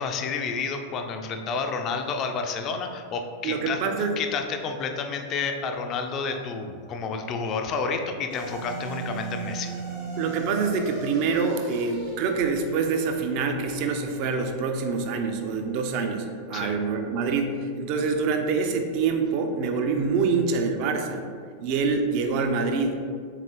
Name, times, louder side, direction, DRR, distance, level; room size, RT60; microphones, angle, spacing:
voice 1, 0.0-3.8 4.2-9.7 16.5-16.8, left 5 dB, 35° left, 5 dB, 0.4 m, -30 dB
voice 2, 3.4-4.1 10.2-21.2 21.6-23.0, right 4 dB, 45° right, 5 dB, 0.4 m, -26 dB
sound 1, 8.3-16.8, right 4 dB, 75° right, 1.2 m, -39 dB
3.9 x 3.7 x 3.0 m, 2.2 s
figure-of-eight pair, 90°, 0 cm